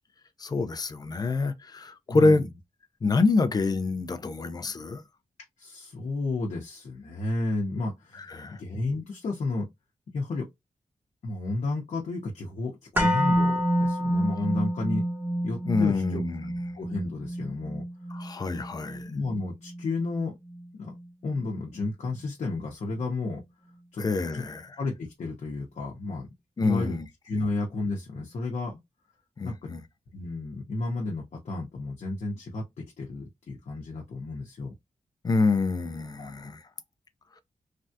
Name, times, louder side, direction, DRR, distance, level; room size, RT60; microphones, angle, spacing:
voice 1, 0.4-2.5 3.0-5.0 8.1-8.6 15.7-16.5 18.1-19.1 24.0-24.8 26.6-27.1 29.4-29.8 35.2-36.6, left 3 dB, 30° left, 0.5 m, -26 dB
voice 2, 2.1-2.5 5.6-8.3 8.6-9.7 10.1-10.5 11.2-15.0 15.4-16.2 16.7-17.8 19.0-20.4 20.8-20.9 21.2-23.4 23.9-24.0 24.3-24.4 24.8-26.3 26.6-27.0 27.3-28.8 29.4-29.7 30.1-34.7 36.2-36.5, left 2 dB, 60° left, 0.8 m, -32 dB
sound 1, 12.9-21.0 21.3-21.4, equal, 15° right, 1.1 m, -29 dB
3.3 x 2.3 x 2.6 m
wide cardioid pair, 160°, 13 cm